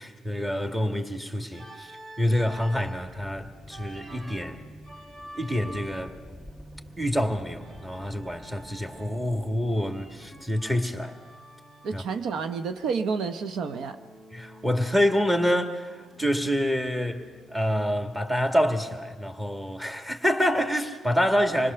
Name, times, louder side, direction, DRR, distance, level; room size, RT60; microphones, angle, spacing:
voice 1, 0.0-1.9 2.2-4.6 5.4-6.1 7.0-11.2 11.9-12.0 14.3-21.7, equal, 10° right, 1.9 m, -27 dB
Organ, 1.5-3.1 3.7-6.3 7.6-9.3 9.7-12.0 13.6-15.4 15.7-18.4, right 1 dB, 45° right, 3.4 m, -48 dB
sound 1, 2.5-10.5, equal, 25° right, 3.1 m, -48 dB
voice 2, 11.8-14.0, right 5 dB, 75° right, 0.9 m, -30 dB
27.0 x 20.0 x 6.9 m
cardioid pair, 90°, 0 cm